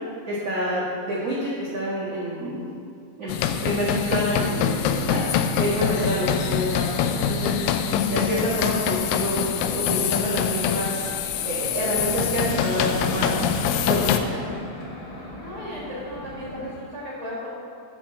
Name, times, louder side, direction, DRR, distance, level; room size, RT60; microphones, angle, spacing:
voice 1, 0.3-2.6 3.2-3.3 3.6-5.2 5.5-7.5 8.1-9.4 9.7-11.0 11.4-13.4 13.9-14.4, right 1 dB, 80° right, -9 dB, 1.3 m, -27 dB
sound 1, 3.3-14.2, left 8 dB, 85° left, 3.1 m, -25 dB
Aircraft, 7.9-16.7, left 1 dB, 60° left, 3.1 m, -37 dB
voice 2, 15.4-17.5, equal, 35° left, -9 dB, 1.4 m, -35 dB
10.0 x 5.4 x 7.3 m, 2.3 s
omnidirectional pair, 6.0 m